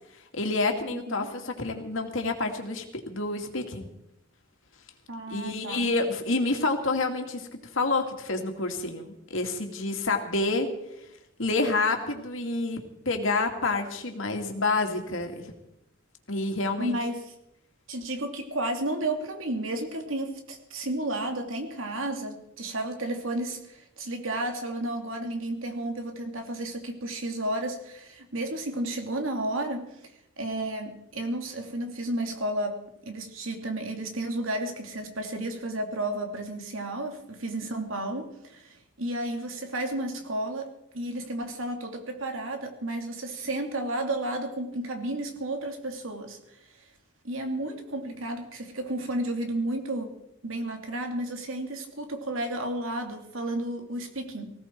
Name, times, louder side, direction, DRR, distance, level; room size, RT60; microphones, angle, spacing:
voice 1, 0.3-3.9 5.3-7.5 7.7-10.7 11.4-15.5 16.3-17.0, left 3 dB, 70° left, 4 dB, 2.4 m, -28 dB
voice 2, 0.9-1.3 5.1-5.9 16.8-17.3 17.9-29.8 30.4-40.7 40.9-46.4 47.2-50.1 50.4-54.5, right 1 dB, 80° right, 4 dB, 2.6 m, -32 dB
19.5 x 16.5 x 4.6 m, 0.83 s
head